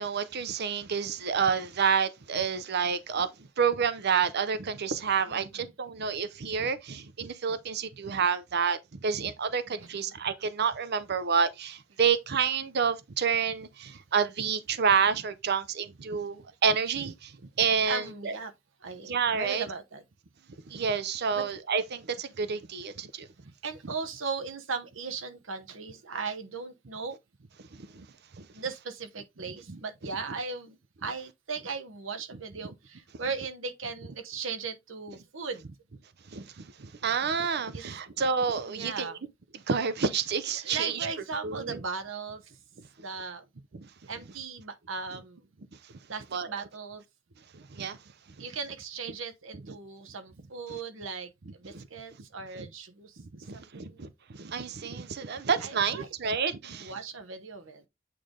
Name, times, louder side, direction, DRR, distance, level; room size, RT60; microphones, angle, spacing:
voice 1, 0.0-3.3 3.6-18.3 19.1-19.6 20.7-23.3 27.7-28.1 28.4-28.5 29.7-29.8 36.3-39.1 39.7-41.1 41.4-41.8 43.7-43.9 46.3-46.5 47.5-48.0 51.7-51.9 53.5-56.9, right 6 dB, 55° right, 0.7 m, -29 dB
voice 2, 17.8-18.5 18.8-20.0 21.3-21.4 23.6-27.2 28.5-35.7 37.7-37.8 38.7-39.2 40.6-42.5 43.0-43.5 44.1-45.5 46.1-47.0 48.4-54.0 55.6-56.1 56.6-57.8, right 4 dB, 75° right, 1.0 m, -38 dB
8.5 x 3.3 x 3.7 m
head